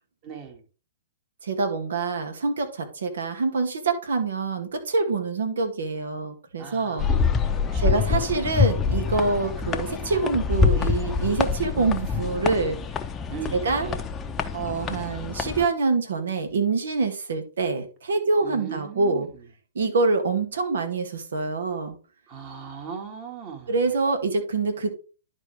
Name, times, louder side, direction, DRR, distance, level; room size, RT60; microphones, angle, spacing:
voice 1, 0.2-0.6 6.6-8.3 13.3-14.1 18.4-19.5 22.3-23.8, right 7 dB, 35° right, 3 dB, 2.1 m, -39 dB
voice 2, 1.4-7.1 7.8-12.8 13.5-13.9 14.5-19.3 19.8-22.0 23.7-25.0, right 4 dB, 80° right, 6 dB, 1.9 m, -25 dB
sound 1, 7.0-15.7, left 5 dB, 20° left, 0.7 m, -26 dB
11.0 x 4.6 x 3.3 m, 0.35 s
hypercardioid pair, 130°, 0 cm